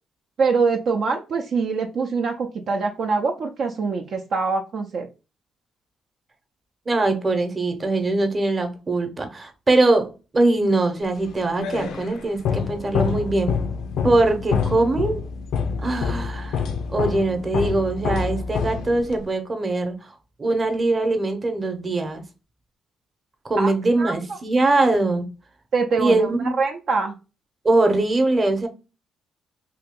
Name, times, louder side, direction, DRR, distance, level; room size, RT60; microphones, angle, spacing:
voice 1, 0.4-5.1 23.6-23.7 24.0-24.4 25.7-27.2, right 4 dB, 60° right, 0.5 m, -24 dB
voice 2, 6.9-13.5 14.0-15.2 15.8-16.6 16.9-20.1 20.4-22.2 23.4-25.2 26.0-26.5 27.6-28.7, right 2 dB, 30° right, 0.9 m, -22 dB
sound 1, 11.2-19.3, left 6 dB, 80° left, 0.5 m, -27 dB
2.9 x 2.8 x 3.7 m
cardioid pair, 90°, 0 cm